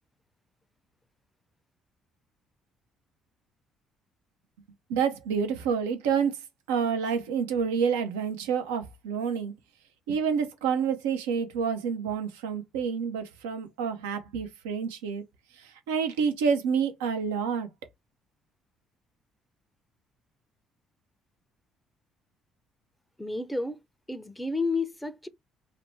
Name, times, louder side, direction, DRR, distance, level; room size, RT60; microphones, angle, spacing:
voice 1, 4.9-6.4 6.7-9.5 10.1-15.2 15.6-17.7, right 6 dB, 85° right, 0.5 m, -28 dB
voice 2, 23.2-23.8 24.1-25.3, left 3 dB, 10° left, 0.5 m, -31 dB
2.5 x 2.1 x 3.0 m
hypercardioid pair, 55°, 0 cm